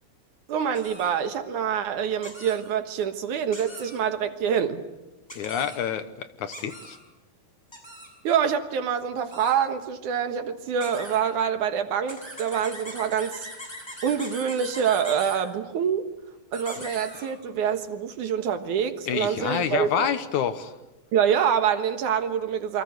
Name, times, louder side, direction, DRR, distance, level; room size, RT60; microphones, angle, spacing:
voice 1, 0.5-4.8 8.2-13.5 14.0-16.0 16.5-20.1 21.1-22.8, right 8 dB, 65° right, 8 dB, 2.7 m, -26 dB
sound 1, 0.7-1.1 2.2-2.6 3.5-4.0 5.3-5.8 6.5-7.0 7.7-8.1 9.2-9.5 10.8-11.2 12.1-15.4 16.5-17.4, equal, 5° left, 7.1 m, -41 dB
voice 2, 5.3-7.0 16.8-16.9 19.1-20.7, left 8 dB, 65° left, 11 dB, 2.3 m, -28 dB
28.5 x 24.5 x 8.0 m, 1.0 s
omnidirectional pair, 4.1 m